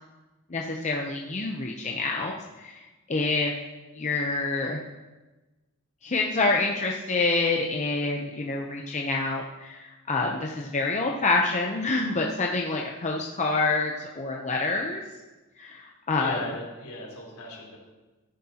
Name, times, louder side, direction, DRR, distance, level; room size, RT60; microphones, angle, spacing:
voice 1, 0.5-2.8 3.1-3.5 3.9-4.8 6.0-15.0 15.6-16.4, left 3 dB, 35° left, 0 dB, 0.7 m, -27 dB
voice 2, 16.1-17.8, left 1 dB, 75° left, -3 dB, 4.0 m, -37 dB
14.0 x 10.0 x 2.9 m, 1.1 s
head